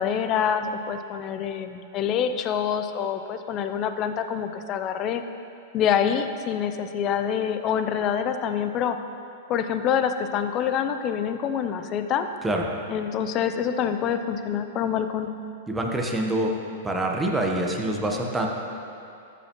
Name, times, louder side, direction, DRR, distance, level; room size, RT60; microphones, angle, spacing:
voice 1, 0.0-5.2 5.7-9.0 9.5-12.3 12.9-15.3, left 8 dB, 35° left, 9 dB, 0.5 m, -26 dB
voice 2, 15.7-16.5 16.8-18.5, right 1 dB, 10° right, 0 dB, 1.1 m, -25 dB
13.0 x 7.0 x 3.1 m, 2.6 s
hypercardioid pair, 120°, 0 cm